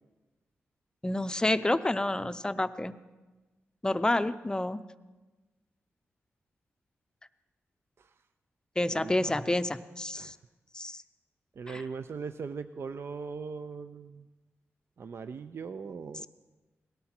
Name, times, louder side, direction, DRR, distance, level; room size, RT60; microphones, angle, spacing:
voice 1, 1.0-2.9 3.8-4.8 8.8-10.3 10.7-11.0 11.7-11.8, left 1 dB, 15° left, 13 dB, 0.5 m, -29 dB
voice 2, 8.9-9.4 10.1-10.3 11.6-14.3 15.0-16.3, right 5 dB, 60° right, 11 dB, 0.4 m, -40 dB
18.0 x 13.0 x 4.4 m, 1.2 s
cardioid pair, 75°, 5 cm